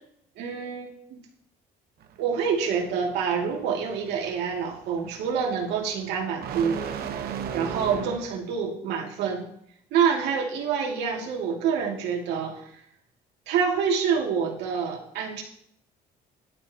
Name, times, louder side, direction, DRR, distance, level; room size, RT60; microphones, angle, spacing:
voice 1, 0.4-1.2 2.2-6.9 7.5-9.5 9.9-12.6 13.5-15.4, right 6 dB, 85° right, 0 dB, 2.4 m, -27 dB
sound 1, 2.0-8.4, right 7 dB, 65° right, 1.2 m, -37 dB
17.5 x 11.5 x 2.9 m, 0.71 s
cardioid pair, 110°, 17 cm